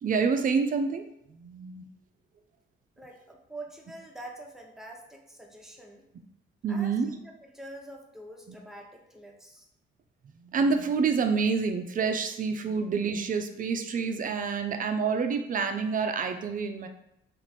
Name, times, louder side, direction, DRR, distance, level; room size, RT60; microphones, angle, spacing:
voice 1, 0.0-1.8 6.6-7.1 10.2-16.9, right 5 dB, 45° right, 6 dB, 0.5 m, -28 dB
voice 2, 3.0-6.0 6.7-9.7, right 1 dB, ahead, 0 dB, 0.7 m, -45 dB
3.1 x 2.6 x 4.1 m, 0.80 s
cardioid pair, 90°, 20 cm